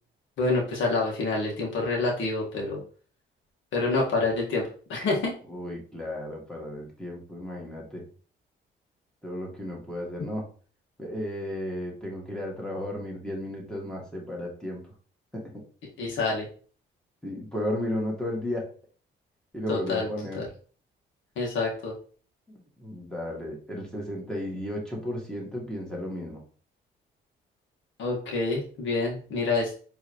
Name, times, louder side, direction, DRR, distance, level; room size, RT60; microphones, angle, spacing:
voice 1, 0.4-2.8 3.7-5.3 16.0-16.5 19.7-20.1 20.3-20.5 21.4-21.9 28.0-29.8, left 3 dB, 75° left, -3 dB, 1.6 m, -27 dB
voice 2, 5.5-8.0 9.2-10.4 11.0-14.8 15.3-15.4 17.2-18.6 19.5-20.4 22.5-26.4, left 1 dB, 5° left, -2 dB, 1.8 m, -34 dB
4.5 x 3.3 x 3.0 m, 0.41 s
cardioid pair, 90°, 20 cm